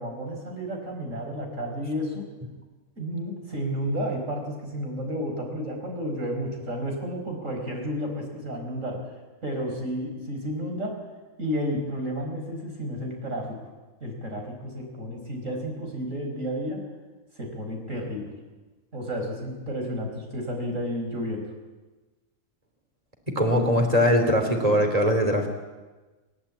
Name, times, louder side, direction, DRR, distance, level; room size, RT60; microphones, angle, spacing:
voice 1, 0.0-2.3 3.0-9.0 9.4-11.0 11.4-13.6 14.0-16.8 17.4-18.3 18.9-21.5, equal, 60° right, 2 dB, 5.3 m, -31 dB
voice 2, 23.3-25.5, equal, 25° right, 4 dB, 3.4 m, -21 dB
29.0 x 12.5 x 8.7 m, 1.2 s
omnidirectional pair, 1.5 m